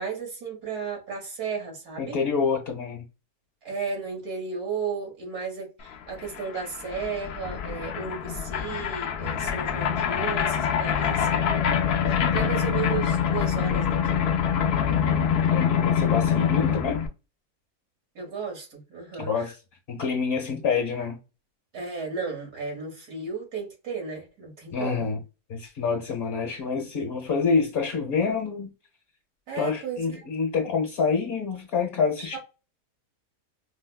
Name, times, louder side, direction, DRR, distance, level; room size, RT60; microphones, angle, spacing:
voice 1, 0.0-2.2 3.7-11.4 12.1-14.3 18.2-19.5 21.7-25.0 29.5-30.3 32.2-32.4, right 5 dB, 75° right, 1.9 m, -34 dB
voice 2, 2.0-3.0 12.2-12.5 15.5-17.0 19.2-19.5 19.9-21.2 24.7-25.2 25.5-28.7 29.5-32.4, left 5 dB, 45° left, 1.1 m, -27 dB
sound 1, 5.9-6.0 6.2-17.1, left 8 dB, 65° left, 0.6 m, -25 dB
4.9 x 2.1 x 2.2 m
omnidirectional pair, 1.6 m